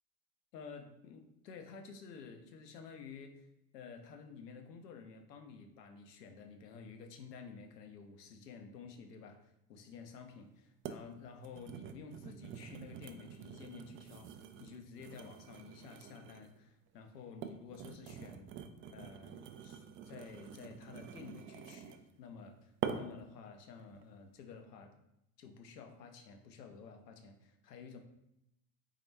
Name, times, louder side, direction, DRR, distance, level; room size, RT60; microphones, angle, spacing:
voice 1, 0.5-3.5 3.7-18.5 18.9-24.9 25.4-28.0, left 5 dB, 80° left, 6 dB, 0.8 m, -52 dB
sound 1, 10.1-10.2 10.8-11.1 11.4-16.6 17.2-22.1 22.8-23.3 23.8-24.0, right 8 dB, 30° right, 0.3 m, -46 dB
4.1 x 3.8 x 3.2 m, 0.84 s
hypercardioid pair, 70°, 47 cm